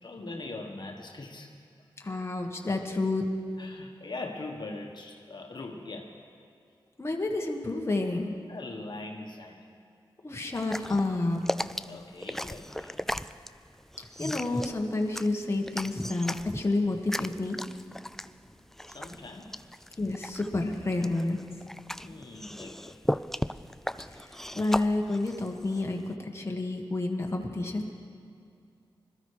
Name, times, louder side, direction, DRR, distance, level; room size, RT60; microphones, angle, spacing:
voice 1, 0.0-1.9 3.6-6.1 8.5-9.7 11.9-13.1 18.9-19.5 22.0-23.0, left 2 dB, 55° left, 1 dB, 1.4 m, -41 dB
voice 2, 2.0-3.3 7.0-8.3 10.2-11.4 14.0-17.6 20.0-21.4 24.0-24.3 24.5-27.9, left 2 dB, 30° left, 1 dB, 1.5 m, -30 dB
sound 1, 10.5-26.1, left 1 dB, 5° left, 0.3 m, -36 dB
21.5 x 13.5 x 4.9 m, 2.4 s
wide cardioid pair, 75°, 9 cm